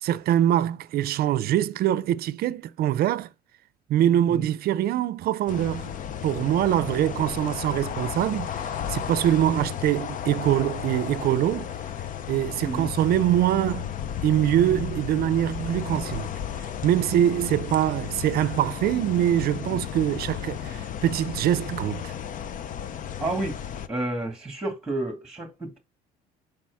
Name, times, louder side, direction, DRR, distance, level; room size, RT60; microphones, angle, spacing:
voice 1, 0.0-3.3 3.9-5.9 6.2-11.7 12.3-13.9 14.2-16.3 16.8-22.1, right 12 dB, 65° right, 0.5 m, -24 dB
sound 1, 5.5-23.9, left 9 dB, 50° left, 0.6 m, -34 dB
voice 2, 23.2-23.6 23.9-25.8, right 2 dB, 5° right, 2.1 m, -30 dB
7.4 x 4.7 x 3.5 m
cardioid pair, 110°, 17 cm